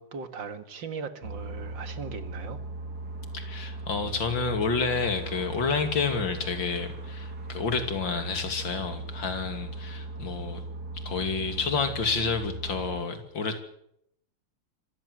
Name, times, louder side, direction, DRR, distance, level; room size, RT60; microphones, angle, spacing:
voice 1, 0.0-2.6, right 5 dB, 65° right, 10 dB, 2.5 m, -38 dB
sound 1, 1.2-13.0, right 2 dB, 45° right, 3.4 m, -38 dB
voice 2, 3.3-10.6 11.0-13.6, left 4 dB, 65° left, 8 dB, 3.3 m, -29 dB
26.0 x 15.0 x 8.0 m, 0.74 s
omnidirectional pair, 2.3 m